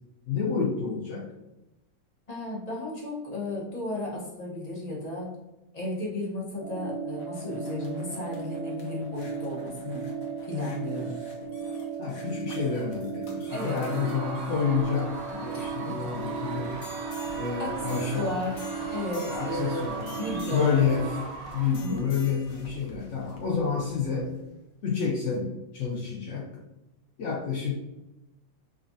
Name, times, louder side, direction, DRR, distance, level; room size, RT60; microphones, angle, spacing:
voice 1, 0.3-1.3 12.0-16.7 17.3-18.3 19.3-20.2 20.5-21.2 21.5-24.3 24.8-26.5 27.2-27.7, left 6 dB, 75° left, -3 dB, 0.6 m, -29 dB
voice 2, 2.3-5.3 5.7-10.1 10.5-11.2 13.5-13.8 15.5-16.0 17.6-18.6 18.9-19.9 20.2-20.8 21.8-22.0, left 2 dB, 30° left, -4 dB, 0.9 m, -34 dB
sound 1, 6.6-21.1, right 6 dB, 90° right, 1.4 m, -36 dB
sound 2, 6.9-24.5 25.0-25.1, left 2 dB, 60° left, 1.0 m, -48 dB
Screaming / Cheering / Crowd, 13.5-22.1, right 4 dB, 70° right, 1.3 m, -40 dB
6.4 x 2.5 x 2.6 m, 0.97 s
omnidirectional pair, 2.0 m